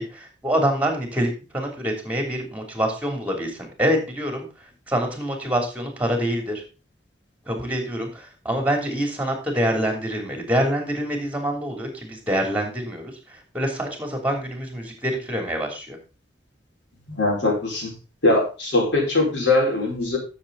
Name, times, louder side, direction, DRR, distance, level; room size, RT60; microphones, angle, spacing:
voice 1, 0.0-4.5 4.9-6.6 7.5-16.0, equal, 10° right, 3 dB, 3.1 m, -26 dB
voice 2, 17.1-17.9 18.2-20.2, left 2 dB, 85° left, -1 dB, 5.2 m, -21 dB
13.0 x 7.1 x 4.0 m, 0.32 s
head